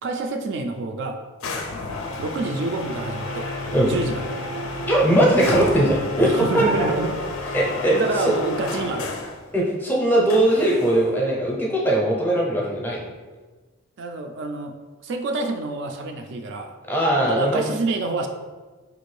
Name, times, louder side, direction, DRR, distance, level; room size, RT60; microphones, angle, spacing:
voice 1, 0.0-1.2 2.2-3.5 3.8-4.5 6.2-7.6 7.9-9.1 14.0-14.7 15.0-16.7 17.3-18.3, right 2 dB, 55° right, 3 dB, 0.3 m, -27 dB
sound 1, 1.4-9.4 10.3-11.2, left 2 dB, 70° left, 0.4 m, -31 dB
voice 2, 4.9-6.9 7.5-8.0 8.3-8.4 9.5-13.0 16.9-17.8, right 1 dB, 10° left, -3 dB, 0.6 m, -20 dB
4.6 x 2.5 x 3.2 m, 1.3 s
head